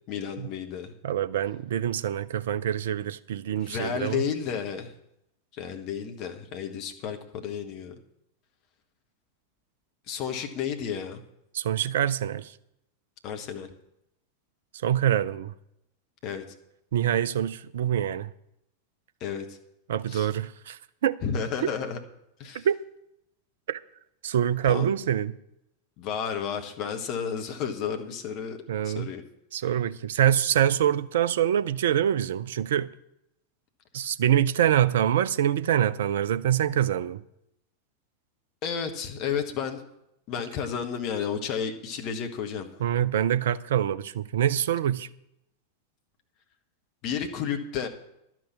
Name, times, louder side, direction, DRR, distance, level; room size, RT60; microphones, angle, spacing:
voice 1, 0.1-0.9 3.6-4.9 5.5-8.0 10.1-11.2 13.2-13.7 16.2-16.4 19.2-19.6 20.1-20.3 21.2-22.0 22.4-22.7 24.6-24.9 26.0-28.6 28.8-29.2 38.6-39.8 40.3-42.7 47.0-47.9, left 7 dB, 40° left, 1.2 m, -32 dB
voice 2, 1.0-4.2 11.5-12.5 14.8-15.5 16.9-18.3 19.9-21.2 21.6-21.7 22.6-22.8 23.7-23.8 24.2-25.3 28.7-29.1 29.5-32.9 33.9-37.2 42.8-45.1, right 10 dB, 60° right, 0.5 m, -25 dB
11.5 x 6.1 x 8.3 m
figure-of-eight pair, 90°, 0 cm